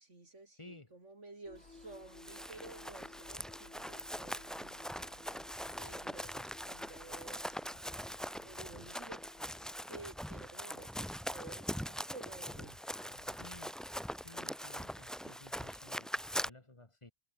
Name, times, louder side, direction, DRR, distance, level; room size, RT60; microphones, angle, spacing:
voice 1, 0.0-5.5 5.7-13.4, right 2 dB, 85° right, 4.6 m, -54 dB
voice 2, 0.6-0.9 13.3-13.8 14.2-17.1, left 2 dB, 25° left, 1.9 m, -55 dB
sound 1, 1.4-9.8, left 3 dB, 75° left, 3.4 m, -58 dB
Run, 1.9-16.5, equal, ahead, 0.6 m, -42 dB
omnidirectional pair, 1.2 m